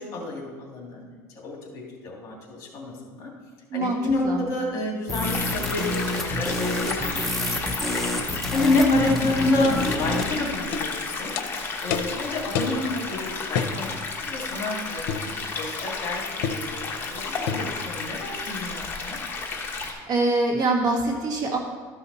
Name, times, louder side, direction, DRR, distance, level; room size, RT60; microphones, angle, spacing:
voice 1, 0.0-3.3 3.7-5.8 6.2-15.3 15.5-19.2, left 2 dB, 40° left, -1 dB, 2.6 m, -29 dB
voice 2, 3.7-4.4 19.7-21.6, right 2 dB, 45° right, 0 dB, 1.7 m, -25 dB
sound 1, 5.1-10.3, left 1 dB, 5° left, 0.6 m, -28 dB
sound 2, 5.2-19.9, left 4 dB, 25° left, 1.2 m, -32 dB
sound 3, 9.2-9.3 9.6-9.8 10.2-10.3 10.7-10.9 11.4-11.5 11.9-12.1 12.5-12.8 13.5-13.8 15.1-15.3 16.4-16.7 17.5-17.7, left 6 dB, 75° left, 0.7 m, -28 dB
13.0 x 5.6 x 4.2 m, 1.5 s
cardioid pair, 150°, 9 cm